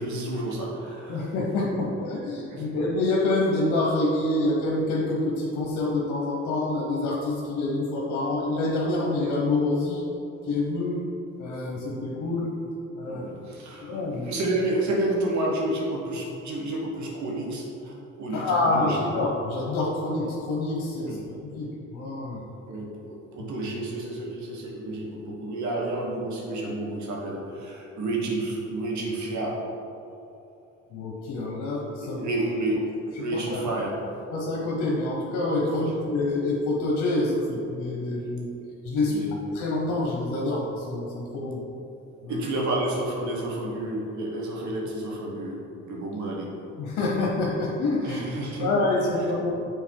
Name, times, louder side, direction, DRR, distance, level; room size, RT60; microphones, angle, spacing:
voice 1, 0.0-1.3 2.5-2.8 13.0-19.1 21.0-21.3 22.7-29.5 32.0-34.0 35.7-35.9 39.1-39.3 42.3-46.5 48.0-48.7 49.5-49.6, right 1 dB, 70° right, -2 dB, 1.4 m, -30 dB
voice 2, 1.1-10.0 10.5-11.0 11.4-12.5 13.0-13.2 13.8-14.3 18.3-22.4 23.4-23.5 30.9-32.2 33.5-33.7 34.3-38.5 38.8-39.2 39.5-41.6 42.2-42.4 46.8-48.2 48.6-49.5, left 2 dB, 90° left, -3 dB, 1.0 m, -27 dB
7.0 x 4.0 x 4.6 m, 2.8 s
cardioid pair, 90°, 30 cm